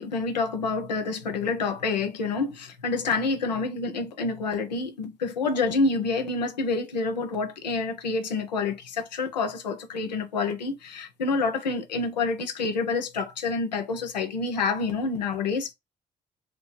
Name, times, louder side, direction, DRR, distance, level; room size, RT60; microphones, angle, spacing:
voice 1, 0.0-15.7, left 4 dB, 90° left, 0.4 m, -28 dB
2.8 x 2.3 x 3.8 m
figure-of-eight pair, 40°, 21 cm